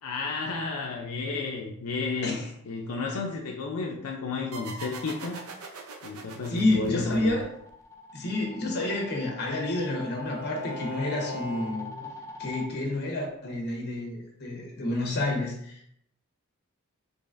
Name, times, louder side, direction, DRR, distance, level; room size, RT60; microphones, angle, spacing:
voice 1, 0.0-2.4 2.7-5.4 6.0-7.4, left 4 dB, 85° left, 0 dB, 0.5 m, -32 dB
sound 1, 4.5-7.8, right 3 dB, 75° right, 0.5 m, -42 dB
voice 2, 6.5-7.5 8.1-11.9 12.4-15.9, left 2 dB, 50° left, 0 dB, 1.0 m, -29 dB
sound 2, 6.5-12.7, left 3 dB, 15° left, 0.4 m, -44 dB
Bowed string instrument, 8.5-12.1, left 1 dB, 45° right, 1.2 m, -41 dB
3.9 x 3.2 x 2.5 m, 0.70 s
head